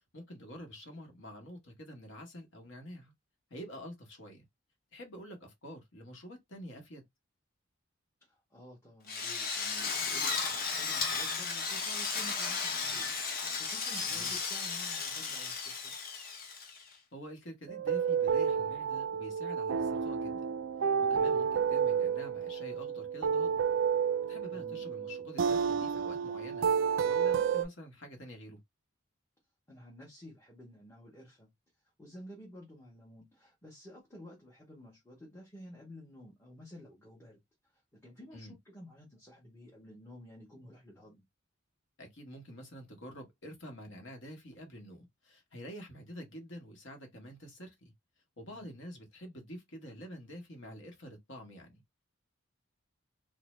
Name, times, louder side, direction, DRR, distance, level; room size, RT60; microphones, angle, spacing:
voice 1, 0.1-3.1 3.5-4.4 4.9-7.1 14.0-14.3 17.1-20.4 21.0-23.7 24.3-26.7 27.0-28.6 38.3-38.5 42.0-47.9 48.4-51.8, equal, 60° left, 1.0 m, -47 dB
voice 2, 8.2-15.9 24.5-24.9 29.7-31.5 32.0-37.4 37.7-41.2 48.5-48.7, equal, 10° left, 0.8 m, -52 dB
Drill, 9.1-16.9, left 5 dB, 45° left, 0.7 m, -35 dB
sound 1, 17.7-27.7, right 7 dB, 65° right, 0.3 m, -30 dB
2.5 x 2.1 x 3.1 m
head